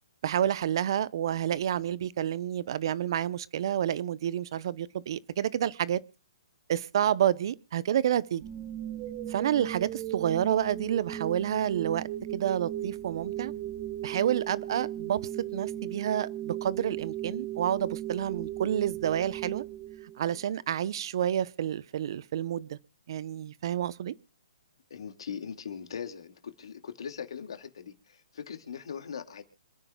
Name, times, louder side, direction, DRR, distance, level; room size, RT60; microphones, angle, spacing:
voice 1, 0.2-6.0 6.7-8.4 9.3-12.0 12.3-13.5 14.0-15.2 15.5-19.6 20.2-22.8 23.1-24.1, right 10 dB, 55° right, 0.8 m, -29 dB
sound 1, 8.4-20.4, right 12 dB, 35° right, 1.3 m, -37 dB
voice 2, 24.9-29.4, left 7 dB, 70° left, 2.2 m, -40 dB
26.5 x 9.8 x 2.3 m
hypercardioid pair, 145°, 3 cm